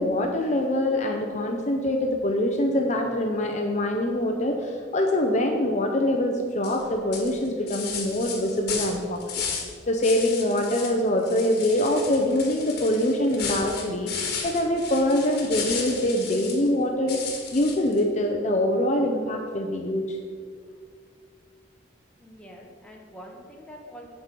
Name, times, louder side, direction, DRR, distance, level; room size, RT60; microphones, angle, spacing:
voice 1, 0.0-9.4 9.9-17.2 17.5-20.2, left 1 dB, 35° left, 3 dB, 0.6 m, -24 dB
sound 1, 6.6-6.8 7.1-9.7 10.0-11.0 11.2-16.7 17.1-18.0, left 6 dB, 55° left, 1.6 m, -34 dB
voice 2, 22.2-24.1, equal, 5° left, -1 dB, 1.2 m, -45 dB
7.8 x 5.4 x 7.5 m, 2.1 s
head